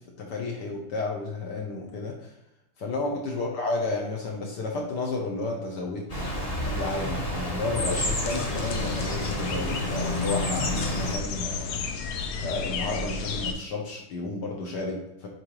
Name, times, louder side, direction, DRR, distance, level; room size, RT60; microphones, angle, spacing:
voice 1, 0.2-2.3 2.8-6.0 6.6-11.7 12.4-15.3, left 3 dB, 65° left, 0 dB, 1.2 m, -32 dB
sound 1, 6.1-11.1, left 1 dB, 20° left, 1.0 m, -30 dB
sound 2, 7.9-13.5, left 4 dB, 80° left, 0.8 m, -32 dB
7.6 x 4.2 x 3.0 m, 0.89 s
omnidirectional pair, 2.4 m